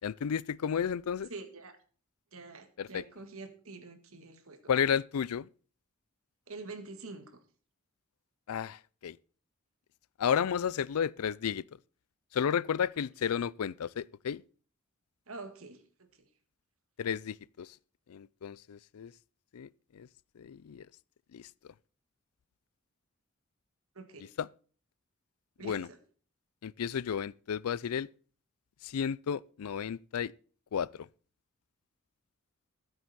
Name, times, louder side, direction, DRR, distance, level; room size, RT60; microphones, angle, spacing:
voice 1, 0.0-1.3 2.8-3.0 4.7-5.5 8.5-9.2 10.2-11.6 12.3-14.4 17.0-17.8 18.1-19.1 19.5-20.1 20.4-20.9 21.3-21.5 24.4-24.5 25.6-25.9 26.6-28.1 28.8-30.3 30.7-31.1, left 7 dB, 85° left, 0.4 m, -32 dB
voice 2, 1.3-1.8 2.3-4.6 6.5-7.4 15.3-16.3 24.0-24.3 25.6-26.0, right 3 dB, 70° right, 1.7 m, -46 dB
14.0 x 7.9 x 4.1 m
head